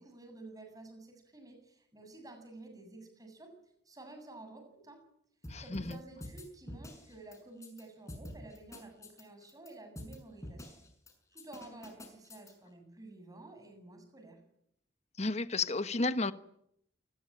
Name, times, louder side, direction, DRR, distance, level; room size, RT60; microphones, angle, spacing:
voice 1, 0.0-3.5 3.9-5.0 5.6-10.8 11.3-14.4, right 2 dB, 20° right, 7.7 m, -51 dB
sound 1, 5.4-5.9 6.2-7.8 8.1-9.7 10.0-10.2 10.4-11.1 11.4-12.5, left 1 dB, 15° left, 6.4 m, -46 dB
voice 2, 5.5-6.0 15.2-16.3, left 3 dB, 35° left, 1.2 m, -32 dB
28.5 x 20.5 x 8.9 m
head